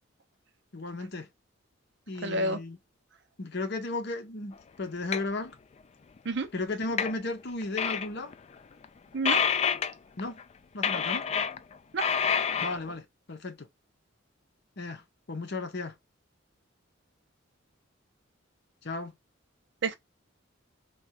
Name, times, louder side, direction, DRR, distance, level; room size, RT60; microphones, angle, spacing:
voice 1, 0.7-1.3 2.1-2.8 3.4-5.6 6.5-8.3 10.2-10.4 10.7-11.3 12.6-13.7 14.8-15.0 15.3-15.9 18.8-19.1, left 2 dB, 55° left, 0.8 m, -35 dB
voice 2, 2.2-2.6 6.3-6.5 9.1-9.4 11.9-12.1 19.8-19.9, right 2 dB, 60° right, 0.6 m, -29 dB
sound 1, 5.1-5.2 7.0-7.1 7.6-8.1 8.3-8.4 8.8-8.9 9.3-9.9 10.2-10.4 10.8-11.7 12.0-12.9, left 7 dB, 30° left, 0.3 m, -27 dB
3.4 x 2.3 x 2.8 m
head